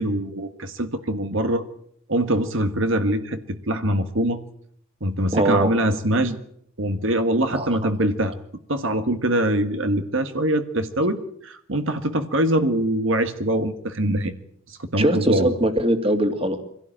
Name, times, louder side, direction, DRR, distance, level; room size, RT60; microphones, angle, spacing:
voice 1, 0.0-1.6 2.1-4.4 5.0-6.4 6.8-8.3 8.7-14.3 14.7-15.6, right 1 dB, 65° right, 7 dB, 1.7 m, -23 dB
voice 2, 5.3-5.7 7.5-7.7 15.0-16.6, right 1 dB, 25° right, 7 dB, 2.5 m, -21 dB
25.5 x 17.0 x 9.0 m, 0.68 s
head